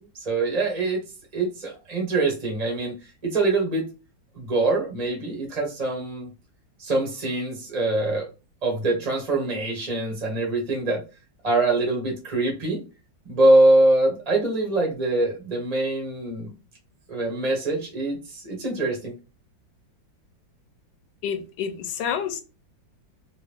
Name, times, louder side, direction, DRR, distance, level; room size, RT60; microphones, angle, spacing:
voice 1, 0.2-1.0 1.3-3.9 4.3-6.3 6.8-8.3 8.6-11.0 11.4-12.8 13.2-16.5 17.1-19.1, right 2 dB, 35° right, 0.6 m, -23 dB
voice 2, 21.2-22.4, left 7 dB, 75° left, 1.2 m, -28 dB
2.8 x 2.8 x 3.3 m
omnidirectional pair, 2.0 m